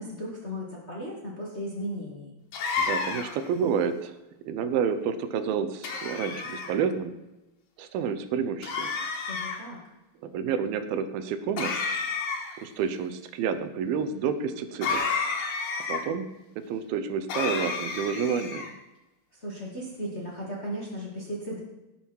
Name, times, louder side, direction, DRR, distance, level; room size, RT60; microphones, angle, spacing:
voice 1, 0.0-2.3 9.3-9.8 19.4-21.6, equal, 25° left, -3 dB, 1.6 m, -36 dB
sound 1, 2.5-3.5 5.8-6.7 8.6-9.6 11.6-12.6 14.8-16.0 17.3-18.7, left 4 dB, 70° left, 3.0 m, -30 dB
voice 2, 2.8-4.1 4.5-7.1 7.8-8.9 10.2-11.8 12.6-15.1 15.9-16.3 16.7-18.7, right 7 dB, 80° right, 10 dB, 2.6 m, -29 dB
17.5 x 7.4 x 4.6 m, 1.0 s
omnidirectional pair, 4.3 m